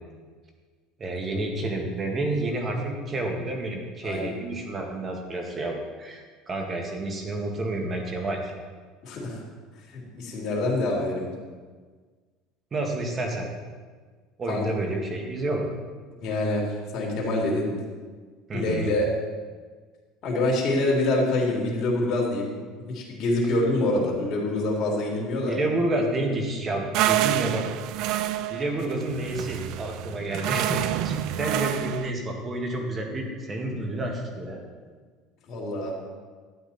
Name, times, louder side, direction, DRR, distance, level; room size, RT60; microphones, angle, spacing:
voice 1, 1.0-8.5 12.7-13.5 14.4-15.6 18.5-18.9 25.5-27.7 27.9-28.1 28.5-34.6, right 2 dB, 30° right, 2 dB, 2.1 m, -29 dB
voice 2, 4.0-4.4 9.0-9.4 9.9-11.3 14.5-14.6 16.2-16.6 16.9-17.7 18.5-19.1 20.2-22.5 22.9-25.6 35.5-35.9, left 2 dB, 45° left, -3 dB, 3.4 m, -25 dB
sound 1, 26.9-32.1, right 13 dB, 65° right, 0.4 m, -28 dB
12.5 x 9.1 x 4.4 m, 1.5 s
supercardioid pair, 120°, 0 cm